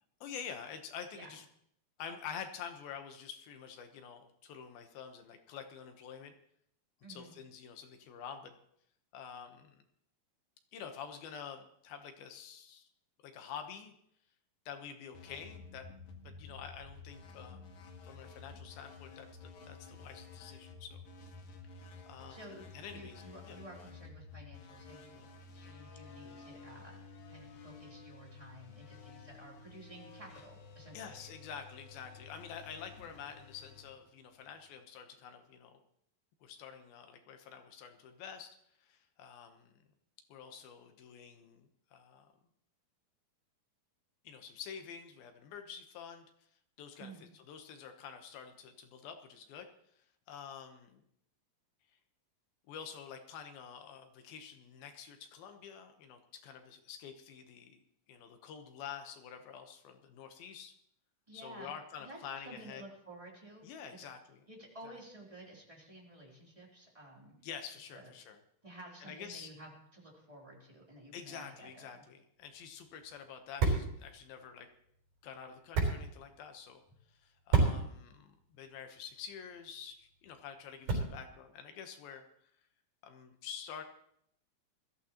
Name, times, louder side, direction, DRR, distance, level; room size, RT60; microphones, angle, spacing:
voice 1, 0.2-1.5 2.0-6.3 7.1-8.6 9.1-9.8 10.7-12.9 13.2-13.9 14.7-15.9 16.2-17.7 18.0-21.0 21.7-22.4 22.7-23.6 30.9-35.8 36.4-39.8 40.3-42.3 44.2-46.3 46.8-49.7 50.0-51.0 51.9-52.0 52.7-57.8 58.1-60.7 61.3-62.8 63.6-64.4 64.8-65.0 67.4-68.4 69.0-69.5 71.1-74.7 75.2-76.8 77.1-82.3 83.0-83.8, left 7 dB, 75° left, 6 dB, 2.9 m, -48 dB
voice 2, 7.0-7.4 22.3-25.2 25.5-31.3 47.0-47.2 61.3-62.2 62.4-64.1 64.5-67.3 67.9-68.1 68.6-72.0, right 1 dB, 10° right, -3 dB, 2.9 m, -53 dB
sound 1, 15.1-34.7, left 4 dB, 60° left, 2.7 m, -52 dB
sound 2, 72.4-81.4, right 4 dB, 70° right, 5.9 m, -36 dB
21.0 x 14.0 x 3.0 m, 0.71 s
omnidirectional pair, 4.4 m